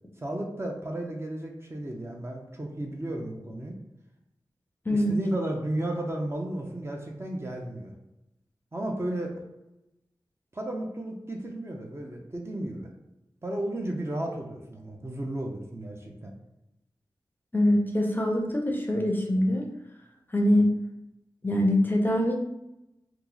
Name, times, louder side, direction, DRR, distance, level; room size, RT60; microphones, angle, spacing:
voice 1, 0.2-3.8 4.9-7.9 8.7-9.3 10.5-12.9 13.4-16.3, right 1 dB, 30° right, 0 dB, 0.6 m, -33 dB
voice 2, 17.5-19.7 20.3-20.7 21.4-22.3, left 1 dB, 20° left, 0 dB, 0.5 m, -23 dB
2.9 x 2.0 x 3.7 m, 0.89 s
wide cardioid pair, 80°, 9 cm